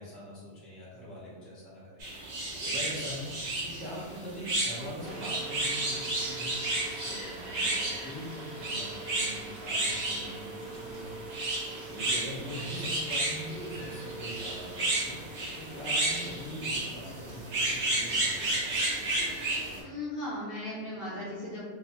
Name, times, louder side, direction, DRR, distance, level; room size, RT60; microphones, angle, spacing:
voice 1, 0.0-6.5 6.8-11.4 11.9-18.6, equal, ahead, -8 dB, 0.5 m, -43 dB
sound 1, 2.0-19.8, right 2 dB, 60° right, 1.0 m, -32 dB
sound 2, 5.0-19.7, right 3 dB, 85° right, 1.1 m, -46 dB
voice 2, 19.8-21.6, left 1 dB, 55° left, -9 dB, 0.7 m, -37 dB
2.6 x 2.3 x 2.9 m, 1.5 s
omnidirectional pair, 1.4 m